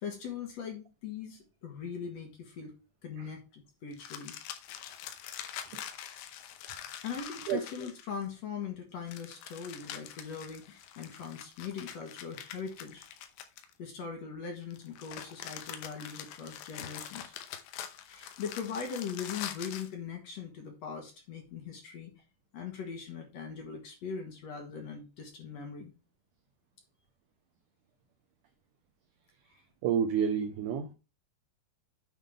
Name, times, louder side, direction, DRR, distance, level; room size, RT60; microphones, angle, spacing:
voice 1, 0.0-2.7 3.0-4.3 7.0-13.1 13.8-17.3 18.0-22.1 22.5-25.9, left 6 dB, 55° left, 2.1 m, -40 dB
sound 1, 3.9-8.2 9.1-14.0 14.7-19.9, left 10 dB, 85° left, 2.7 m, -44 dB
voice 2, 29.8-30.9, right 8 dB, 90° right, 1.7 m, -29 dB
9.4 x 3.7 x 4.9 m
omnidirectional pair, 4.4 m